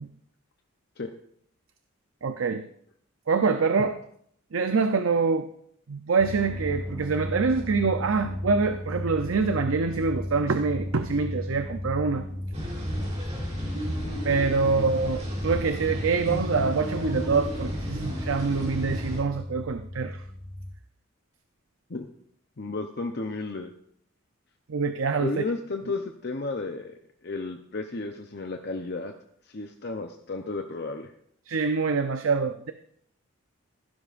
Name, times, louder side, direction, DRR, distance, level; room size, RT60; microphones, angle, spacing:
voice 1, 2.2-2.6 3.3-4.0 4.5-5.5 5.9-12.3 14.2-20.2 24.7-25.4 31.5-32.7, right 4 dB, 80° right, 8 dB, 0.6 m, -25 dB
sound 1, 6.2-20.7, left 1 dB, ahead, 1.2 m, -35 dB
sound 2, 12.5-19.2, equal, 35° right, 3.6 m, -33 dB
voice 2, 22.6-23.7 25.2-26.9 27.2-29.1 29.5-31.1, left 3 dB, 50° left, 4 dB, 0.8 m, -33 dB
15.0 x 12.0 x 2.5 m, 0.66 s
head